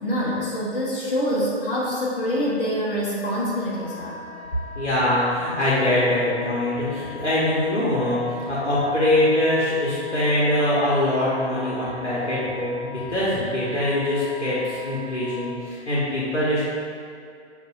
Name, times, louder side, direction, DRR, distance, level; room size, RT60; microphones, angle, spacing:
voice 1, 0.0-4.2, equal, 50° left, -8 dB, 1.1 m, -25 dB
Wind instrument woodwind instrument, 3.7-15.5, left 3 dB, 20° right, 1.0 m, -40 dB
voice 2, 4.7-16.6, left 1 dB, 80° left, -9 dB, 1.1 m, -23 dB
6.4 x 2.7 x 2.6 m, 2.4 s
figure-of-eight pair, 130°, 35 cm